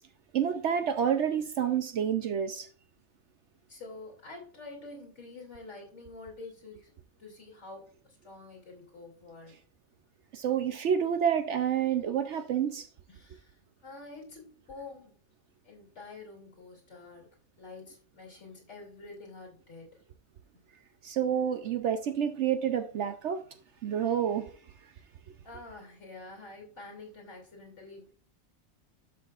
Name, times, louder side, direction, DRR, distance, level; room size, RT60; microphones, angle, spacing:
voice 1, 0.3-2.7 10.3-12.9 21.0-23.4 23.8-24.5, right 8 dB, 65° right, 0.8 m, -28 dB
voice 2, 3.7-6.9 7.2-9.6 13.1-15.1 15.6-17.3 17.6-20.0 20.5-20.6 25.4-28.1, left 3 dB, 55° left, 3.2 m, -47 dB
12.5 x 6.1 x 2.4 m
omnidirectional pair, 1.4 m